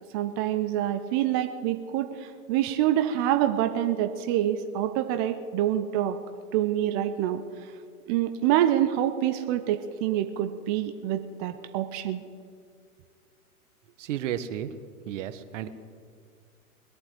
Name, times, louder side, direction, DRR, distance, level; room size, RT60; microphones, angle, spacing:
voice 1, 0.1-6.2 6.5-7.7 8.1-12.2, right 11 dB, 20° right, 8 dB, 0.3 m, -26 dB
voice 2, 14.0-14.7 15.1-15.7, right 10 dB, 55° right, 11 dB, 1.3 m, -32 dB
21.5 x 8.6 x 7.8 m, 2.1 s
hypercardioid pair, 110°, 45 cm